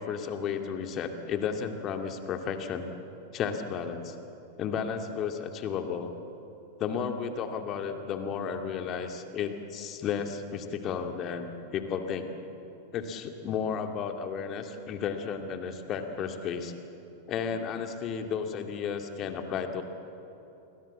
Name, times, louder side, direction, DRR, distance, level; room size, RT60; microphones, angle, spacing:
voice 1, 0.0-2.9 3.3-4.2 4.6-6.1 6.8-12.3 12.9-16.7 17.3-19.8, left 7 dB, 35° left, 6 dB, 2.3 m, -33 dB
29.0 x 22.0 x 7.5 m, 3.0 s
figure-of-eight pair, 90°, 0 cm